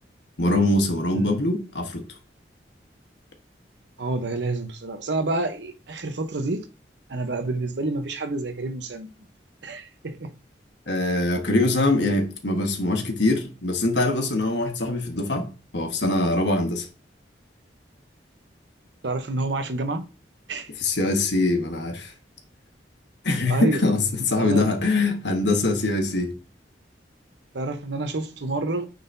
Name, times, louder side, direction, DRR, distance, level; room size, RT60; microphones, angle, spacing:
voice 1, 0.4-2.0 10.9-15.5 15.7-16.9 20.8-22.1 23.2-26.3, left 2 dB, 75° left, 1.3 m, -23 dB
voice 2, 4.0-6.7 7.1-9.1 9.6-10.3 19.0-20.0 20.5-20.7 23.5-23.9 24.4-24.7 27.5-28.9, right 2 dB, 80° right, 0.9 m, -28 dB
9.3 x 3.9 x 2.7 m
head